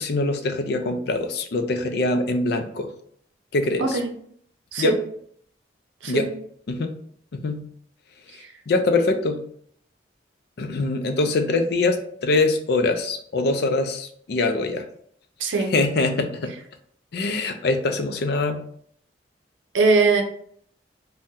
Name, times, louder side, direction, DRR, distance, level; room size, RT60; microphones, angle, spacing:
voice 1, 0.0-2.9 3.5-4.0 4.8-4.9 6.1-6.2 6.7-6.9 7.3-7.6 8.7-9.4 10.6-14.9 15.7-16.5 17.1-18.6, left 3 dB, 60° left, 6 dB, 0.4 m, -23 dB
voice 2, 3.8-4.1 4.7-5.0 6.0-6.3 8.3-8.5 15.4-15.7 19.7-20.2, right 3 dB, 85° right, 3 dB, 0.6 m, -21 dB
2.7 x 2.1 x 3.6 m, 0.63 s
head